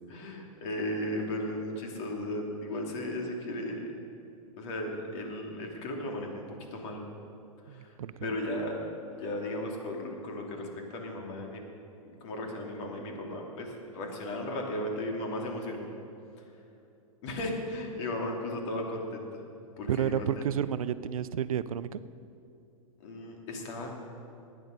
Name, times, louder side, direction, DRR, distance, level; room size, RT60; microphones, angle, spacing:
voice 1, 0.1-3.9 4.6-6.4 6.7-7.0 7.7-8.8 9.1-11.6 12.2-15.9 16.4-16.5 17.2-19.4 19.8-20.4 23.0-23.9, left 1 dB, 55° left, 1 dB, 3.0 m, -35 dB
voice 2, 7.7-8.3 19.9-22.0, right 9 dB, 75° right, 15 dB, 0.6 m, -31 dB
19.5 x 9.3 x 5.3 m, 2.7 s
hypercardioid pair, 115°, 18 cm